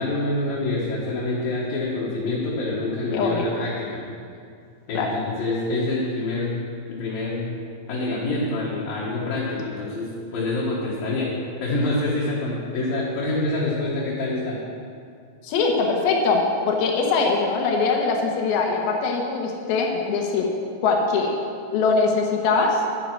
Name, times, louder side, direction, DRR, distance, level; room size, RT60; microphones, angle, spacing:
voice 1, 0.0-4.0 4.9-6.6 6.9-7.6 7.9-11.3 11.6-14.6, left 2 dB, 70° left, -6 dB, 3.3 m, -26 dB
voice 2, 3.1-3.5 4.9-5.1 15.4-20.5 20.8-21.3 21.7-22.8, left 4 dB, 90° left, 0 dB, 3.1 m, -22 dB
11.0 x 10.5 x 6.1 m, 2.3 s
omnidirectional pair, 4.2 m